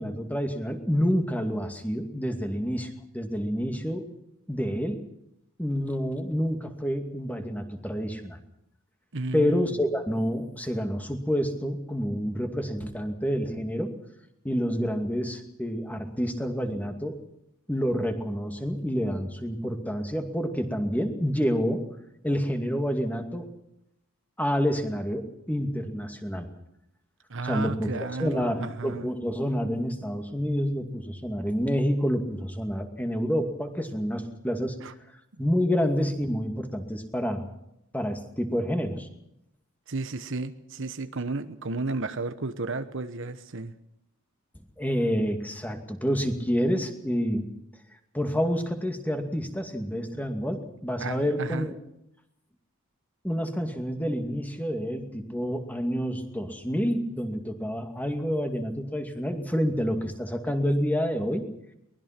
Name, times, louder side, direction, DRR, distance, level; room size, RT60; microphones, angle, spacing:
voice 1, 0.0-4.1 4.5-5.0 5.6-8.4 9.3-13.9 14.4-17.2 17.7-21.8 22.2-23.5 24.4-26.5 27.4-34.8 35.4-37.5 37.9-39.1 44.8-47.5 48.1-51.8 53.2-61.4, equal, 5° left, 5 dB, 2.3 m, -28 dB
voice 2, 9.1-9.8 27.3-29.1 34.8-34.9 39.9-43.7 51.0-51.7, right 3 dB, 60° right, 10 dB, 1.2 m, -33 dB
23.5 x 20.5 x 6.0 m, 0.79 s
head